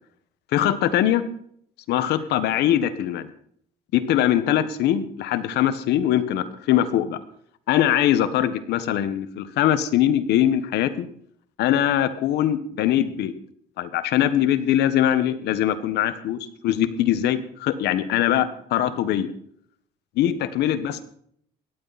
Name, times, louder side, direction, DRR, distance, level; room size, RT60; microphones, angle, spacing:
voice 1, 0.5-1.2 1.9-3.3 3.9-7.2 7.7-11.1 11.6-13.3 13.8-19.3 20.1-21.0, left 11 dB, 80° left, 13 dB, 1.5 m, -22 dB
17.0 x 13.5 x 4.3 m, 0.65 s
cardioid pair, 110°, 17 cm